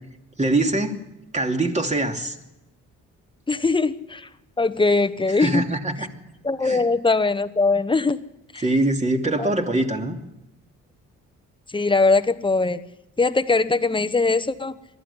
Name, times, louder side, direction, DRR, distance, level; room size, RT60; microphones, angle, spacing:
voice 1, 0.4-1.0 1.3-2.3 5.4-6.1 6.6-6.8 8.6-10.2, right 2 dB, 25° right, 3 dB, 2.8 m, -23 dB
voice 2, 3.5-4.3 4.6-5.7 6.4-8.2 8.5-8.6 9.4-9.5 11.7-12.8 13.2-14.8, left 3 dB, 15° left, 12 dB, 1.1 m, -21 dB
21.0 x 14.0 x 10.0 m, 0.95 s
cardioid pair, 90°, 30 cm